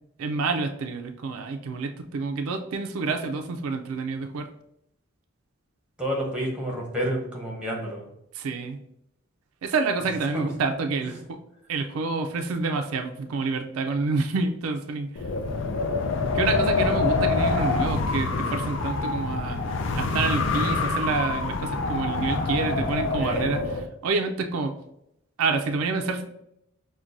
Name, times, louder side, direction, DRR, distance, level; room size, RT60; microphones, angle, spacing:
voice 1, 0.2-4.5 8.3-8.8 9.6-11.1 11.7-15.1 16.3-19.6 20.0-24.8 25.4-26.3, right 4 dB, 80° right, 6 dB, 0.4 m, -28 dB
voice 2, 6.0-8.1 10.3-10.5 11.0-11.2 23.1-23.5, equal, 5° right, -2 dB, 0.8 m, -30 dB
Wind, 15.2-23.9, left 3 dB, 60° left, 0.4 m, -26 dB
5.9 x 2.2 x 2.5 m, 0.81 s
head